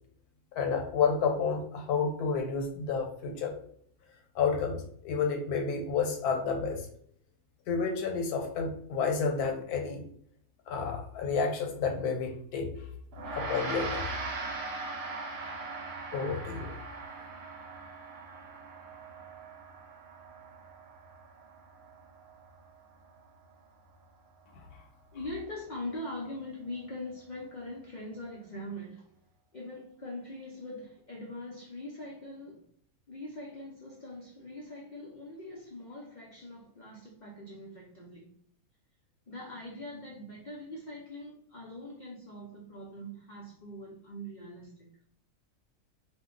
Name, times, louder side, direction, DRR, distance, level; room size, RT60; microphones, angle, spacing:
voice 1, 0.5-3.5 4.3-6.9 7.7-10.0 10.7-12.7 13.3-14.1 16.1-16.8, left 5 dB, 90° left, 3 dB, 1.2 m, -30 dB
Gong, 13.1-22.8, right 3 dB, 85° right, 1.2 m, -40 dB
voice 2, 25.1-29.0 29.5-32.6 33.1-38.3 39.3-44.9, left 1 dB, 65° left, -3 dB, 0.4 m, -42 dB
2.7 x 2.1 x 3.7 m, 0.66 s
omnidirectional pair, 1.6 m